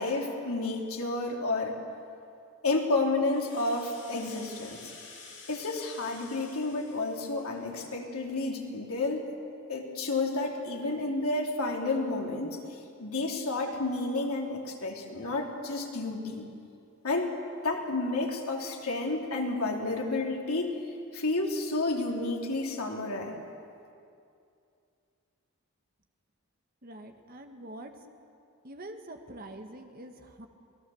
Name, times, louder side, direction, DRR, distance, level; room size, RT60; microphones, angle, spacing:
voice 1, 0.0-1.8 2.6-4.9 5.5-9.3 9.7-12.6 13.0-16.5 17.0-17.3 17.6-20.7 21.1-23.4, left 2 dB, 85° left, 0 dB, 3.1 m, -31 dB
Rattle (instrument), 3.2-8.0, left 4 dB, 55° left, 6.6 m, -50 dB
voice 2, 26.8-27.9 28.6-30.5, right 1 dB, 40° right, 5 dB, 1.6 m, -45 dB
28.0 x 18.5 x 7.1 m, 2.5 s
head